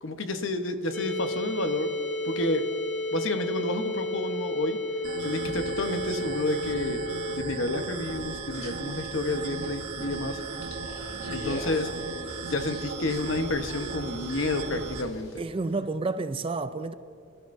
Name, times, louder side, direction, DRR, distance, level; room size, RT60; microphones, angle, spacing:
voice 1, 0.0-1.9 2.2-2.6 3.1-4.8 5.2-7.0 7.3-10.4 11.3-11.9 12.4-15.3, left 2 dB, 60° left, 1.0 m, -30 dB
sound 1, 0.9-7.4, left 1 dB, 5° left, 2.4 m, -32 dB
sound 2, 5.0-15.0, right 4 dB, 90° right, 1.1 m, -37 dB
sound 3, 8.0-15.4, equal, 30° left, 2.0 m, -42 dB
voice 2, 15.4-16.9, right 3 dB, 25° right, 0.3 m, -30 dB
26.0 x 12.5 x 2.7 m
head